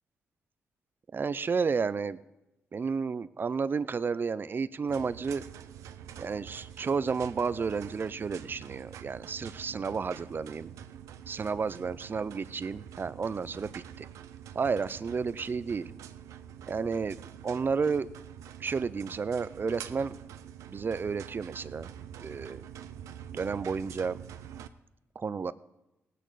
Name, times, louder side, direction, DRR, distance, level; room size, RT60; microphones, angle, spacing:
voice 1, 1.1-2.2 2.7-5.4 6.2-10.7 11.3-14.1 14.5-15.9 16.7-17.2 17.4-18.1 18.6-20.2 20.7-21.9 22.2-22.6 23.3-24.2 25.2-25.5, right 5 dB, 40° right, 16 dB, 0.6 m, -31 dB
sound 1, 4.9-24.7, right 9 dB, 85° right, 0.6 m, -46 dB
18.0 x 9.2 x 4.1 m, 0.95 s
cardioid pair, 65°, 5 cm